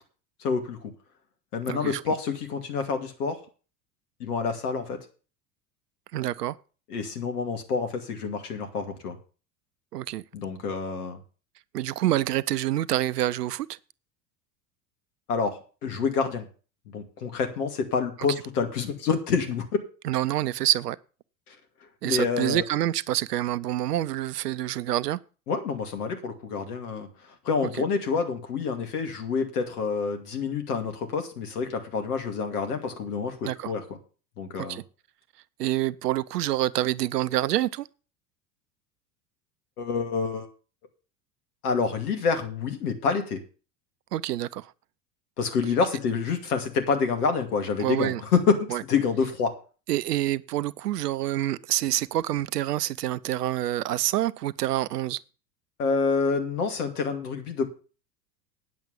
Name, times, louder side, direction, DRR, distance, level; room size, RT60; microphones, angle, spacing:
voice 1, 0.4-0.9 1.5-3.4 4.2-5.0 6.9-9.2 10.3-11.2 15.3-16.5 16.9-19.6 22.0-22.6 25.5-27.1 27.4-33.8 34.4-34.8 39.8-40.5 41.6-43.4 45.4-48.4 48.9-49.6 55.8-57.7, left 5 dB, 65° left, 2.5 m, -28 dB
voice 2, 1.7-2.0 6.1-6.6 9.9-10.2 11.7-13.8 20.0-21.0 22.0-25.2 33.4-33.7 34.6-34.8 35.6-37.9 44.1-44.7 47.8-48.2 48.7-48.8 49.9-55.2, right 14 dB, 70° right, 0.7 m, -27 dB
9.4 x 7.5 x 7.2 m
figure-of-eight pair, 75°, 50 cm